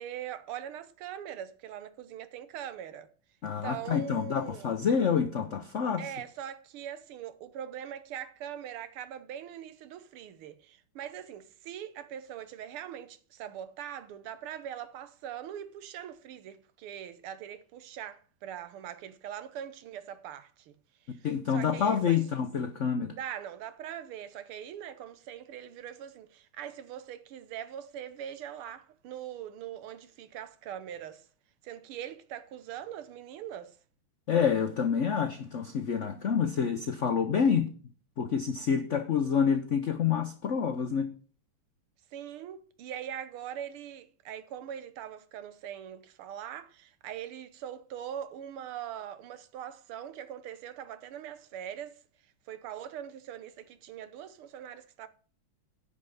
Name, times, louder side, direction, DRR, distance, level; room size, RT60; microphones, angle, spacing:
voice 1, 0.0-3.1 3.6-4.7 6.0-20.8 21.1-22.2 23.2-31.3 31.6-33.8 42.1-52.0 52.5-55.1, right 10 dB, 90° right, 1.8 m, -42 dB
voice 2, 3.4-6.0 21.2-23.2 34.3-37.7 38.2-41.1, left 7 dB, 80° left, 0.6 m, -27 dB
9.9 x 5.7 x 6.9 m
omnidirectional pair, 2.3 m